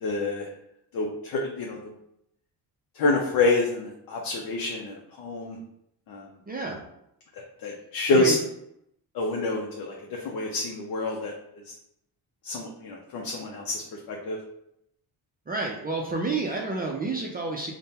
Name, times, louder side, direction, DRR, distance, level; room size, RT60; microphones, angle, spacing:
voice 1, 0.0-0.5 0.9-1.9 2.9-5.6 6.1-6.3 7.6-8.4 9.1-11.3 12.4-14.4, left 2 dB, 60° left, -1 dB, 0.7 m, -27 dB
voice 2, 6.5-6.8 8.1-8.4 15.5-17.7, right 3 dB, 25° right, -1 dB, 0.5 m, -30 dB
3.6 x 2.2 x 4.2 m, 0.78 s
cardioid pair, 125°, 41 cm